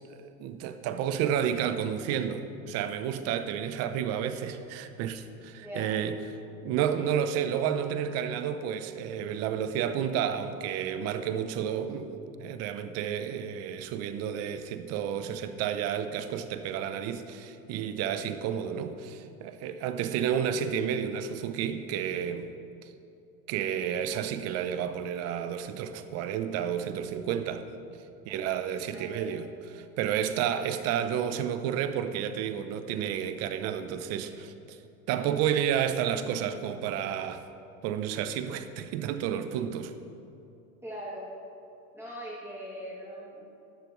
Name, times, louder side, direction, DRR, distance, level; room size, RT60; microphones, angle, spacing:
voice 1, 0.1-6.2 6.6-22.5 22.8-22.9 23.5-27.7 28.3-34.8 35.1-37.4 37.8-39.9, right 9 dB, 35° right, 10 dB, 0.7 m, -31 dB
voice 2, 5.6-6.0 28.2-28.5 28.9-29.4 40.8-41.3 41.9-43.6, equal, 5° right, -7 dB, 2.4 m, -41 dB
14.0 x 11.5 x 3.1 m, 2.7 s
supercardioid pair, 145°, 43 cm